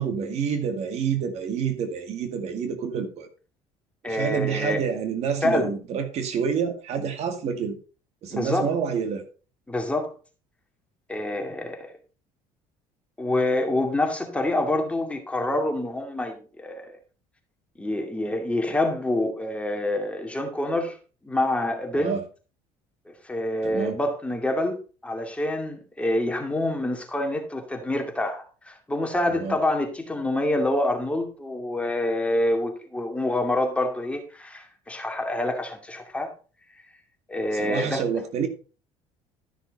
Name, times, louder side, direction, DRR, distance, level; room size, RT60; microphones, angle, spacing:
voice 1, 0.0-3.3 4.0-7.8 8.2-9.2 21.9-22.2 23.6-24.0 29.3-29.6 37.5-38.5, right 7 dB, 55° right, 2.1 m, -28 dB
voice 2, 4.0-4.8 5.4-5.7 8.3-8.7 9.7-10.1 11.1-11.9 13.2-17.0 17.8-21.0 21.2-22.2 23.1-24.7 25.0-36.3 37.3-38.0, left 1 dB, 10° left, 2.3 m, -26 dB
13.0 x 6.5 x 4.1 m
cardioid pair, 120°, 13 cm